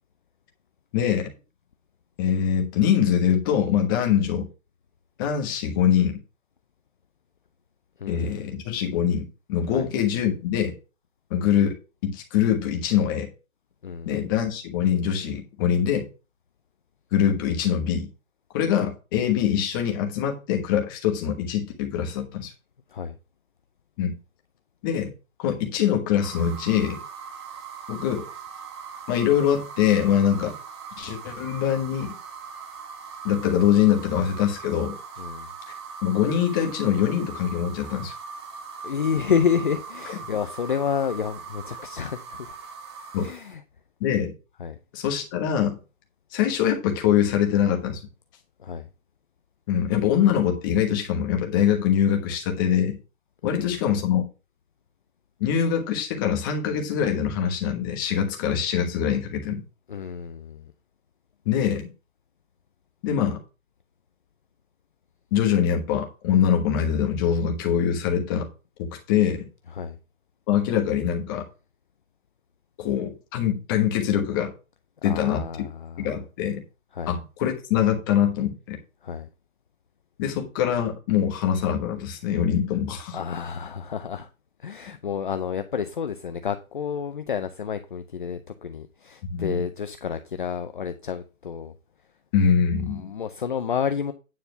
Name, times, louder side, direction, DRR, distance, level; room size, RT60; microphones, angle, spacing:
voice 1, 0.9-1.3 2.2-4.5 5.2-6.2 8.1-10.7 11.3-11.7 12.0-13.3 14.0-16.1 17.1-18.1 18.5-22.5 24.0-24.2 24.8-25.1 25.4-27.0 27.9-28.2 29.1-30.5 31.0-32.1 33.2-35.0 36.0-38.1 43.1-43.3 44.0-44.3 44.9-45.8 46.3-48.0 49.7-53.0 53.4-54.3 55.4-59.6 61.4-61.9 63.0-63.4 65.3-68.5 68.8-69.5 70.5-71.5 72.8-74.5 75.0-75.5 76.0-76.6 77.1-78.8 80.2-83.2 89.3-89.6 92.3-93.0, left 9 dB, 15° left, 1.3 m, -23 dB
voice 2, 8.0-8.5 9.7-9.9 13.8-14.2 22.9-23.2 35.2-35.5 38.8-42.6 43.2-43.6 44.6-44.8 48.6-48.9 53.4-53.7 59.9-60.7 69.7-70.0 75.0-76.1 76.9-77.1 79.0-79.3 83.1-84.3 84.6-91.7 92.9-94.1, left 7 dB, 40° left, 0.6 m, -29 dB
sound 1, 26.2-43.5, right 5 dB, 20° right, 1.2 m, -40 dB
9.5 x 4.2 x 6.8 m
hypercardioid pair, 165°, 41 cm